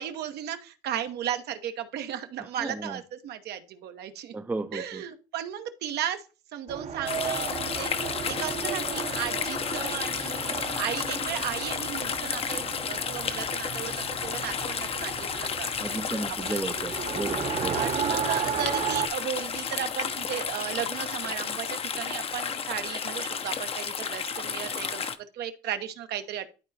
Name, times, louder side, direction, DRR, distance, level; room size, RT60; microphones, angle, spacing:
voice 1, 0.0-4.4 4.7-6.2 6.5-15.7 16.4-16.9 17.7-26.5, right 10 dB, 75° right, 0.9 m, -35 dB
voice 2, 2.4-3.0 4.3-5.0 15.8-17.9, right 2 dB, 10° right, 0.5 m, -34 dB
Race car auto racing, 6.7-19.1, right 7 dB, 40° right, 0.8 m, -34 dB
sound 1, 7.1-25.2, left 6 dB, 35° left, 0.6 m, -32 dB
12.0 x 4.1 x 2.6 m
cardioid pair, 110°, 17 cm